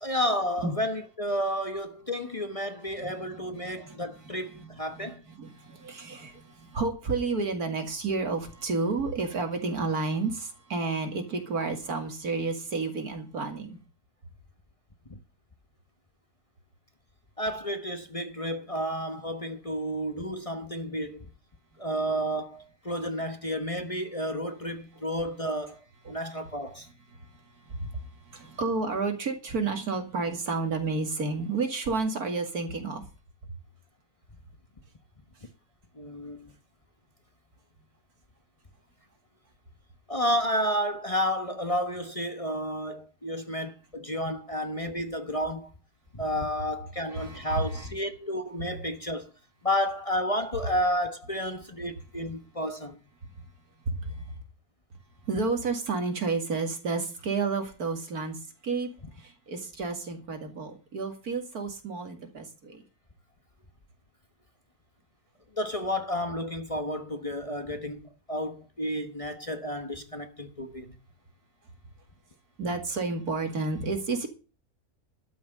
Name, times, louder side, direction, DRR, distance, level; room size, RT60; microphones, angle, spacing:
voice 1, 0.0-5.2 15.1-15.2 17.4-21.3 21.8-25.8 26.1-26.9 36.0-36.5 40.1-45.7 46.1-49.3 49.6-53.0 65.5-70.9, equal, 25° left, 1.1 m, -31 dB
voice 2, 3.0-4.3 4.6-13.8 26.0-26.2 27.1-27.3 27.7-33.1 47.1-47.9 53.4-53.5 53.9-54.2 55.3-58.9 59.2-62.8 72.6-74.3, right 3 dB, 80° right, 2.7 m, -31 dB
12.5 x 6.2 x 8.8 m
omnidirectional pair, 1.6 m